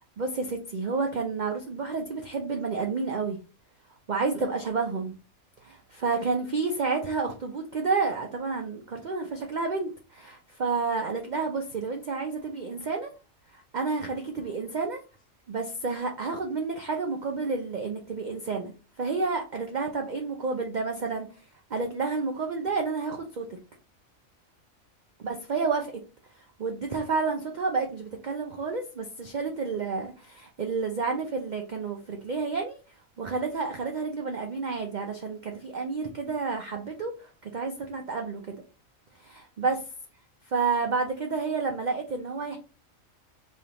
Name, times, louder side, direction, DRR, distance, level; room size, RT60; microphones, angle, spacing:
voice 1, 0.2-3.4 4.1-5.1 5.6-13.1 13.5-15.0 15.5-18.7 19.0-21.3 21.7-23.6 25.2-25.9 26.6-32.8 33.2-38.6 39.2-39.8 40.5-42.6, right 4 dB, 60° right, 3 dB, 0.5 m, -30 dB
5.1 x 2.7 x 2.9 m, 0.33 s
omnidirectional pair, 1.4 m